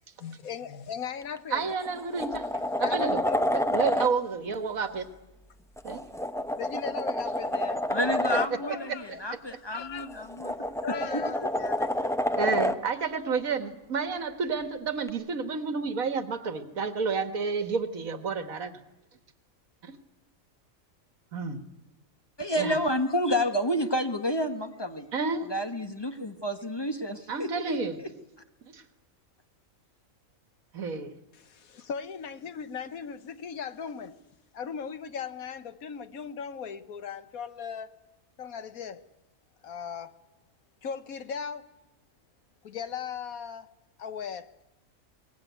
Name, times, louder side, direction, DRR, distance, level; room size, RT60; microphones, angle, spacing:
voice 1, 0.2-1.7 2.6-3.4 6.6-7.9 8.3-9.2 9.5-10.3 10.8-11.9 31.3-34.2 34.5-37.9 38.4-39.1 39.6-40.1 40.8-41.8 42.6-43.7 44.0-44.7, left 7 dB, 90° left, 1.6 m, -38 dB
sound 1, 1.2-1.4 1.8-4.1 5.8-8.5 10.0-12.8 15.1-15.2, left 1 dB, 5° left, 0.7 m, -29 dB
voice 2, 1.5-2.5 2.8-3.2 3.7-5.1 5.8-6.0 8.5-9.2 12.4-18.7 19.8-20.0 21.3-21.6 22.6-22.8 25.1-25.5 27.3-28.0 28.7-28.8 30.7-31.1, right 5 dB, 80° right, 2.0 m, -30 dB
voice 3, 7.9-10.6 11.1-11.2 22.4-25.1 25.5-28.1, equal, 20° left, 1.5 m, -30 dB
23.0 x 20.0 x 9.4 m
omnidirectional pair, 1.4 m